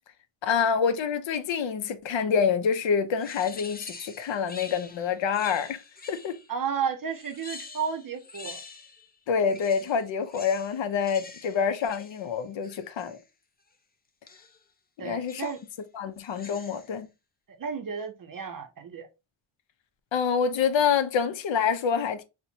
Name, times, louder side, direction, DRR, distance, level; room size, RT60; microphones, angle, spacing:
voice 1, 0.4-6.4 9.3-13.2 15.0-15.5 15.9-17.1 20.1-22.2, left 6 dB, 65° left, 0.6 m, -27 dB
sound 1, 3.2-6.6 7.1-9.1 9.4-13.2 14.3-14.6 15.3-15.7 16.2-17.0, left 4 dB, 20° left, 0.4 m, -46 dB
voice 2, 6.5-8.6 15.0-15.6 17.6-19.1, right 6 dB, 45° right, 0.6 m, -32 dB
4.2 x 2.1 x 2.7 m
wide cardioid pair, 105°, 49 cm